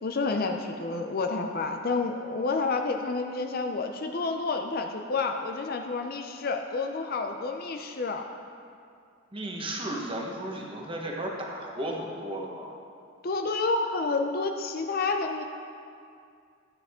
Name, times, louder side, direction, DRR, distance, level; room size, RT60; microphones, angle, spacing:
voice 1, 0.0-8.2 13.2-15.4, left 3 dB, 45° left, 5 dB, 0.5 m, -29 dB
voice 2, 9.3-12.8, right 1 dB, 25° right, -1 dB, 1.2 m, -34 dB
13.0 x 9.2 x 3.7 m, 2.3 s
head